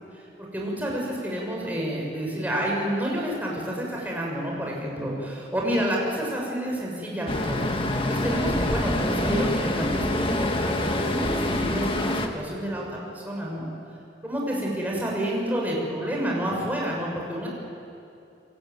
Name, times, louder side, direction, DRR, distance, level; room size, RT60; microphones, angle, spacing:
voice 1, 0.1-7.6 8.1-13.6 14.2-17.5, equal, 10° right, -2 dB, 6.4 m, -29 dB
Traffic noise roadway noise, 7.3-12.3, left 1 dB, 30° left, 1.7 m, -26 dB
28.0 x 22.0 x 9.2 m, 2.6 s
head